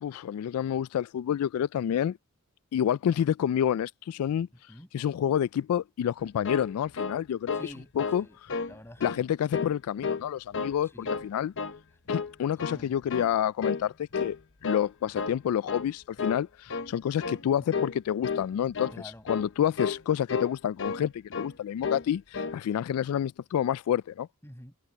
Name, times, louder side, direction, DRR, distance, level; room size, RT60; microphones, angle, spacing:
voice 1, 0.0-2.2 2.7-4.5 4.9-8.2 9.0-11.5 12.1-14.4 14.6-18.9 19.3-24.3, left 9 dB, 85° left, 0.3 m, -28 dB
sound 1, 6.2-7.7 8.0-8.2 8.5-9.2 9.5-10.3 10.5-11.3 11.6-11.8 12.1-12.8 13.1-13.3 13.6-13.9 14.1-14.9 15.1-15.4 15.7-15.9 16.2-16.4 16.7-16.9 17.2-17.4 17.7-18.0 18.2-18.5 18.7-19.0 19.3-19.5 19.8-20.0 20.3-21.1 21.3-21.5 21.8-22.1 22.3-22.6, left 5 dB, 60° left, 1.1 m, -32 dB
voice 2, 7.5-7.9 8.2-8.4 8.7-9.0 10.8-11.1 12.7-13.0 18.9-19.2 24.4-24.8, left 1 dB, 10° left, 6.1 m, -47 dB
head